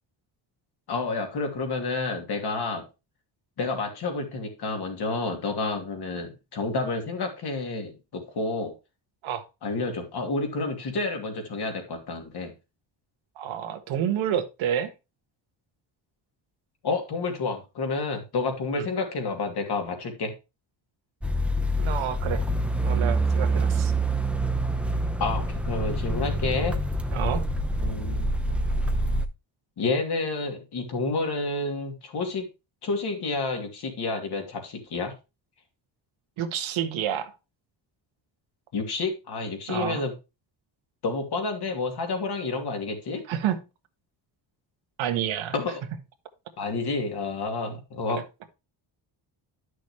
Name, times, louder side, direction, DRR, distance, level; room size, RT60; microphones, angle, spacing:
voice 1, 0.9-2.8 3.6-8.7 9.6-12.5 16.8-20.3 25.2-26.8 27.8-28.3 29.8-32.5 32.8-35.1 38.7-40.1 41.0-43.2 45.5-45.8 46.6-48.2, left 3 dB, 55° left, 3 dB, 2.8 m, -29 dB
voice 2, 13.4-14.9 18.7-18.9 21.8-22.4 22.8-23.9 27.1-27.4 36.4-37.3 39.7-40.0 43.3-43.6 45.0-45.5, right 9 dB, 80° right, 7 dB, 1.5 m, -29 dB
sound 1, 21.2-29.3, right 1 dB, 5° right, 0.7 m, -26 dB
10.5 x 6.3 x 3.2 m, 0.27 s
cardioid pair, 120°, 46 cm